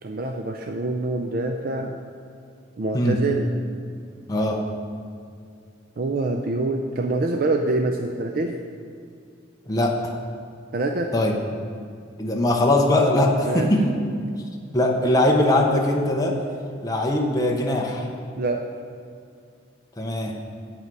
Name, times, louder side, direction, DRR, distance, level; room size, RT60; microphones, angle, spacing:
voice 1, 0.0-1.9 2.8-3.5 6.0-8.6 10.7-11.1 13.5-13.7 18.4-18.7, right 2 dB, 45° right, 4 dB, 0.4 m, -25 dB
voice 2, 4.3-4.7 9.7-10.1 11.1-11.3 12.2-13.9 14.7-16.4 16.8-18.1 20.0-20.4, left 1 dB, 20° left, -1 dB, 0.7 m, -21 dB
8.7 x 8.2 x 4.7 m, 2.3 s
head